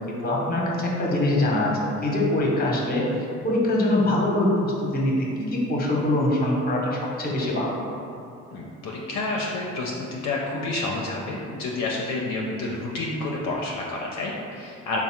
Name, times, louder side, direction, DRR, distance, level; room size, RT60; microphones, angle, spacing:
voice 1, 0.2-3.0 3.4-5.1 5.4-7.8, left 1 dB, 30° left, -2 dB, 0.8 m, -23 dB
voice 2, 8.5-15.0, left 2 dB, 65° left, -3 dB, 0.5 m, -29 dB
3.4 x 2.0 x 4.3 m, 2.6 s
cardioid pair, 90°, 30 cm